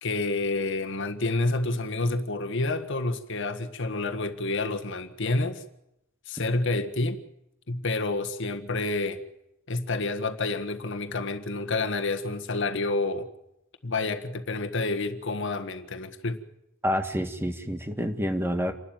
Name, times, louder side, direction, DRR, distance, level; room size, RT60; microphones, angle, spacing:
voice 1, 0.0-5.6 6.3-7.2 7.7-9.2 9.7-13.3 13.8-16.4, left 2 dB, 65° left, 8 dB, 1.6 m, -29 dB
voice 2, 16.8-18.7, equal, 10° right, 6 dB, 1.8 m, -28 dB
28.5 x 12.5 x 9.0 m, 0.85 s
head